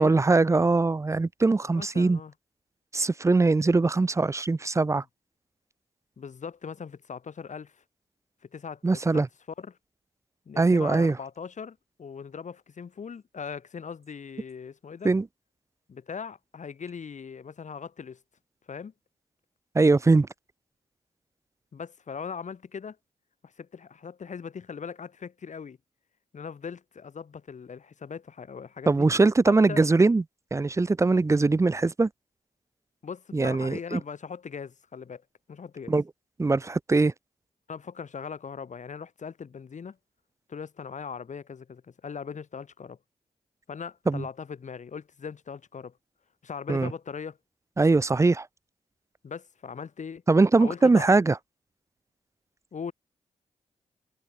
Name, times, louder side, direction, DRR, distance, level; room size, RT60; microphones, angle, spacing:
voice 1, 0.0-2.2 2.9-5.0 8.8-9.3 10.6-11.2 15.0-15.3 19.7-20.3 28.9-30.2 30.5-32.1 33.3-34.0 35.9-36.0 36.4-37.1 44.1-44.2 46.7-46.9 47.8-48.5 50.3-51.4, right 3 dB, 20° right, 0.5 m, -21 dB
voice 2, 1.6-2.3 6.2-7.8 8.5-9.2 9.6-9.8 10.4-15.1 15.9-18.2 18.7-18.9 21.7-23.0 23.4-25.8 26.3-29.1 29.5-29.8 33.0-35.2 35.5-35.9 37.7-40.0 40.5-43.0 43.7-45.9 46.4-47.4 49.2-50.2 50.6-51.1 52.7-52.9, left 6 dB, 65° left, 3.6 m, -39 dB
supercardioid pair, 45°, 13 cm